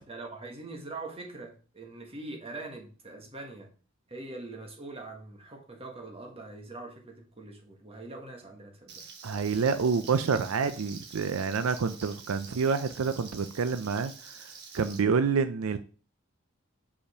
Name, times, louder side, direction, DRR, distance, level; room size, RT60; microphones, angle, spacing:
voice 1, 0.1-3.7 4.1-9.0, right 2 dB, 30° right, 1.6 m, -43 dB
Frying (food), 8.9-15.0, right 5 dB, 55° right, 1.4 m, -47 dB
voice 2, 9.2-14.3 14.7-15.8, right 5 dB, 75° right, 0.5 m, -28 dB
5.2 x 5.0 x 5.0 m
head